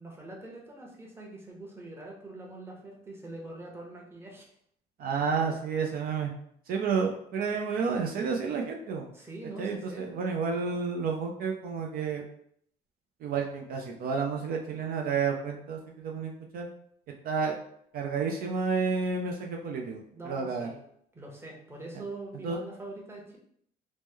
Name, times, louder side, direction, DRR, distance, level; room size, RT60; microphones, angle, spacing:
voice 1, 0.0-4.5 9.1-10.1 20.1-20.8 21.1-23.4, right 2 dB, 15° right, -1 dB, 0.8 m, -43 dB
voice 2, 5.0-6.3 6.7-9.1 9.6-12.2 13.2-16.7 17.2-17.5 17.9-20.7 22.4-22.6, right 5 dB, 60° right, 1 dB, 0.5 m, -30 dB
3.1 x 2.1 x 3.5 m, 0.68 s
cardioid pair, 110°, 17 cm